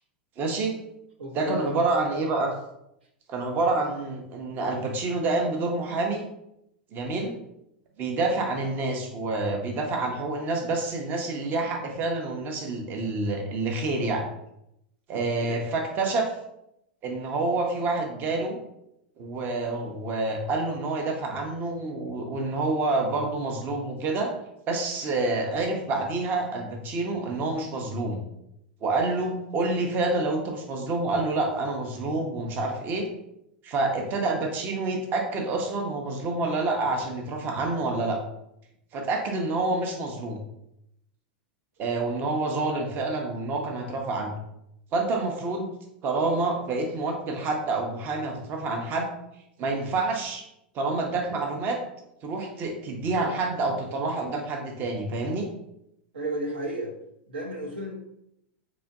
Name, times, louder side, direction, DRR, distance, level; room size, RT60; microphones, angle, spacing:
voice 1, 0.4-0.8 1.3-2.5 3.3-6.2 6.9-7.3 8.0-14.2 15.1-16.3 17.0-18.6 19.2-24.3 24.7-28.2 28.8-33.1 33.6-38.2 38.9-40.4 41.8-44.3 44.9-45.7 46.0-49.1 49.6-50.4 50.7-51.8 52.2-55.5, right 2 dB, 35° right, 2 dB, 0.7 m, -28 dB
voice 2, 1.2-1.5 15.1-15.6 56.1-57.0 57.3-58.0, right 1 dB, 75° right, 0 dB, 0.7 m, -33 dB
4.1 x 2.9 x 2.4 m, 0.81 s
figure-of-eight pair, 90°, 6 cm